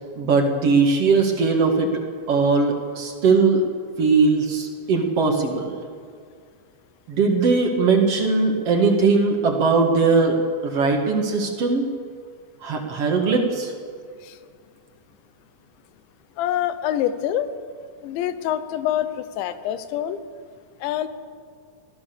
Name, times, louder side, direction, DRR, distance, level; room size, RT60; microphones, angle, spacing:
voice 1, 0.2-1.9 2.3-3.6 4.0-5.7 7.1-10.4 10.6-11.9 12.6-13.7, right 4 dB, 50° right, 2 dB, 2.1 m, -19 dB
voice 2, 16.4-17.5 18.0-20.2 20.8-21.1, left 11 dB, 90° left, 12 dB, 3.3 m, -25 dB
24.0 x 16.0 x 6.9 m, 2.1 s
omnidirectional pair, 5.1 m